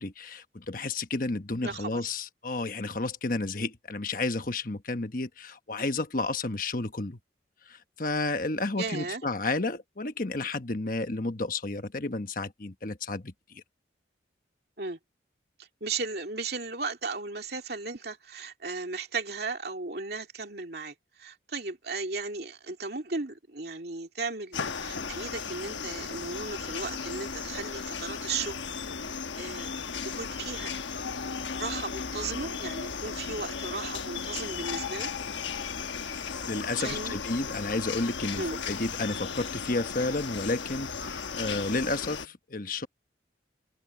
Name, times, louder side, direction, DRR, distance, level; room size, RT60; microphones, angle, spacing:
voice 1, 0.0-7.2 7.7-13.6 36.1-42.9, left 2 dB, 50° left, 1.2 m, -32 dB
voice 2, 1.6-2.0 8.8-9.2 14.8-15.0 15.6-28.6 29.4-29.7 30.0-30.7 31.5-35.1 36.8-37.2 38.4-38.6, right 4 dB, 60° right, 2.7 m, -36 dB
Quiet jungle axe, 24.5-42.3, left 5 dB, 80° left, 1.2 m, -35 dB
open air
head